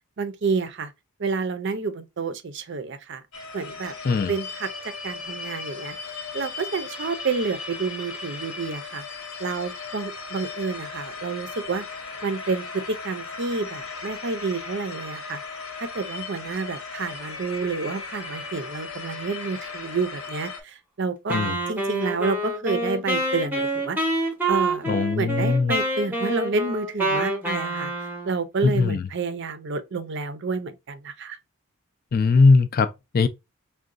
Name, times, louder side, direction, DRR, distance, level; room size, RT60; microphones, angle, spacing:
voice 1, 0.2-0.9 1.2-3.2 3.5-3.9 4.3-4.7 5.0-9.0 9.4-11.8 12.2-15.4 15.8-21.4 21.7-24.0 24.5-24.8 25.2-31.4, right 4 dB, 55° right, 0.5 m, -29 dB
sound 1, 3.3-20.6, left 4 dB, 75° left, 1.0 m, -37 dB
Wind instrument woodwind instrument, 21.3-28.4, right 1 dB, 10° right, 0.7 m, -27 dB
voice 2, 24.9-25.7 28.6-29.0 32.1-33.3, left 4 dB, 40° left, 0.3 m, -20 dB
4.7 x 2.2 x 2.5 m
head